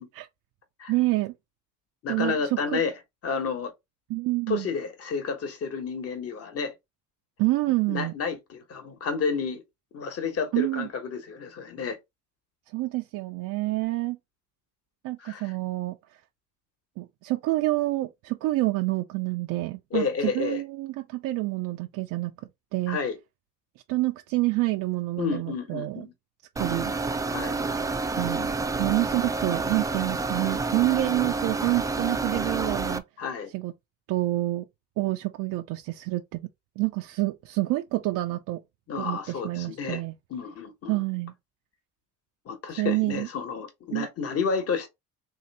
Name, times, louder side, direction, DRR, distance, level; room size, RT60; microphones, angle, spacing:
voice 1, 0.9-1.3 2.1-2.8 4.1-4.7 7.4-8.1 10.5-10.9 12.7-14.2 15.0-15.9 17.0-22.3 22.7-23.0 23.9-26.1 26.6-26.9 28.1-28.5 28.8-33.0 33.5-33.7 34.1-34.6 35.0-36.4 36.8-38.6 39.0-40.1 40.9-41.3 42.7-43.3 43.9-44.1, right 19 dB, 80° right, 0.5 m, -27 dB
voice 2, 2.0-2.9 3.2-3.7 4.5-6.7 7.9-9.6 9.9-12.0 15.2-15.5 19.9-20.6 22.9-23.2 25.2-26.1 27.3-27.5 33.2-33.5 38.9-40.0 40.3-41.0 42.4-44.9, left 5 dB, 45° left, 1.2 m, -30 dB
sound 1, 26.6-33.0, right 3 dB, 10° right, 0.3 m, -29 dB
3.3 x 2.8 x 4.1 m
cardioid pair, 125°, 32 cm